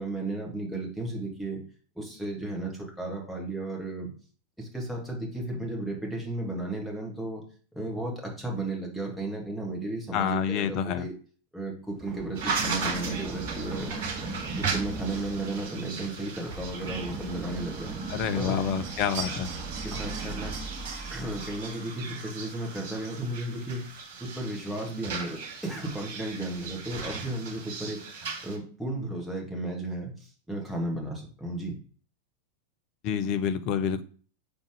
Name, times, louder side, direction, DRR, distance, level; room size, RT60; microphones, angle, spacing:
voice 1, 0.0-1.6 2.0-4.1 4.6-7.4 7.7-11.1 11.5-13.9 14.6-17.9 18.3-18.6 19.8-20.5 21.1-23.8 24.2-28.0 28.4-31.8, right 2 dB, ahead, -2 dB, 2.0 m, -34 dB
voice 2, 10.1-11.1 18.1-19.5 33.0-34.0, left 8 dB, 40° left, 11 dB, 0.6 m, -28 dB
Run, 12.0-21.7, right 3 dB, 20° right, 2.2 m, -38 dB
sound 1, 12.3-28.6, right 5 dB, 55° right, 1.4 m, -37 dB
5.3 x 3.9 x 5.1 m, 0.42 s
figure-of-eight pair, 90°, 0 cm